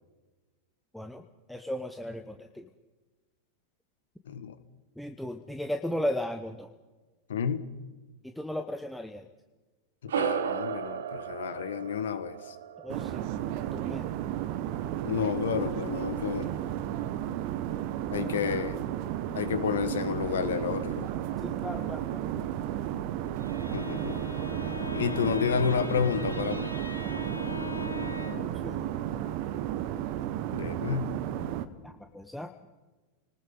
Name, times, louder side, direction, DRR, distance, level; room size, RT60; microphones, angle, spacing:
voice 1, 1.5-2.7 5.0-6.7 8.2-9.3 12.8-13.2 13.6-14.1 18.3-18.6 21.4-22.3 28.3-28.9 31.8-32.5, left 1 dB, ahead, 6 dB, 1.0 m, -36 dB
voice 2, 7.3-7.6 10.0-12.6 15.0-16.5 18.1-18.8 19.3-21.1 23.7-24.2 24.9-26.7 30.5-31.2, left 7 dB, 60° left, 13 dB, 1.4 m, -30 dB
sound 1, 10.1-14.8, right 8 dB, 65° right, 1.4 m, -35 dB
sound 2, 12.9-31.6, right 12 dB, 45° right, 1.3 m, -33 dB
Bowed string instrument, 23.3-28.6, left 6 dB, 85° left, 1.7 m, -40 dB
29.0 x 19.5 x 5.4 m, 1.2 s
figure-of-eight pair, 90°, 0 cm